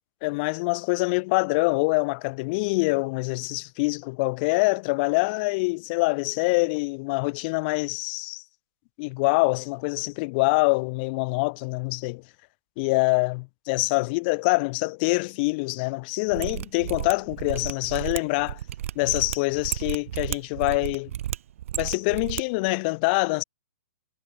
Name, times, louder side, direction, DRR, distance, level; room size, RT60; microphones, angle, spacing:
voice 1, 0.2-8.4 9.0-12.2 12.8-18.6 18.9-21.1 21.8-23.4, left 28 dB, 40° left, 1.4 m, -25 dB
Mechanisms, 16.3-22.4 22.7-22.8, right 12 dB, 60° right, 1.0 m, -33 dB
hypercardioid pair, 130°, 8 cm